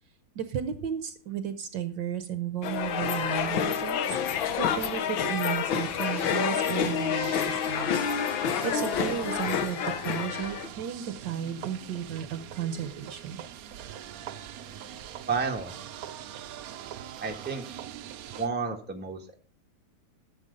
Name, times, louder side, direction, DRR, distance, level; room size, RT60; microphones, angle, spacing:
voice 1, 0.3-4.0 4.3-13.4, right 9 dB, 65° right, 11 dB, 1.3 m, -34 dB
sound 1, 2.6-10.7, left 7 dB, 70° left, 1.7 m, -28 dB
sound 2, 5.8-18.5, right 10 dB, 85° right, 0.7 m, -43 dB
voice 2, 15.3-15.7 17.2-17.7 18.3-19.2, right 5 dB, 5° right, 3 dB, 1.1 m, -31 dB
12.5 x 7.3 x 5.2 m, 0.42 s
omnidirectional pair, 2.3 m